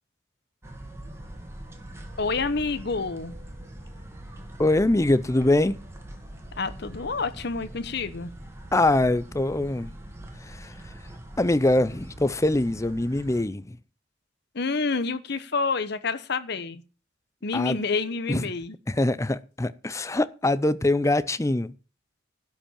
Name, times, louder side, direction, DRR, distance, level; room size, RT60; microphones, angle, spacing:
sound 1, 0.6-13.4, right 1 dB, 15° right, 2.1 m, -42 dB
voice 1, 2.2-3.3 6.6-8.3 14.5-16.8 17.4-18.8, left 4 dB, 55° left, 0.9 m, -28 dB
voice 2, 4.6-5.8 8.7-9.9 10.4-10.7 11.4-13.8 17.5-17.8 18.3-18.4 18.9-21.7, left 2 dB, 15° left, 0.5 m, -23 dB
12.0 x 5.4 x 8.7 m
head